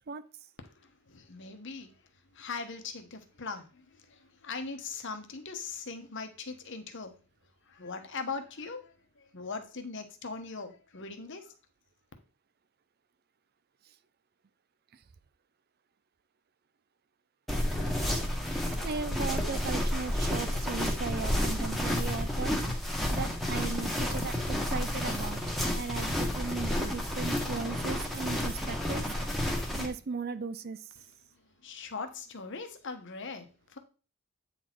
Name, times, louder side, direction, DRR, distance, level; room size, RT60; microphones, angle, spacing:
voice 1, 0.6-1.9 2.3-7.2 7.7-11.5 31.6-33.8, left 4 dB, 55° left, 1.1 m, -40 dB
sound 1, 17.5-29.9, left 1 dB, ahead, 1.4 m, -31 dB
voice 2, 18.8-22.6 23.1-25.4 25.7-29.1 29.8-30.8, right 4 dB, 45° right, 0.4 m, -37 dB
8.9 x 4.2 x 4.5 m
head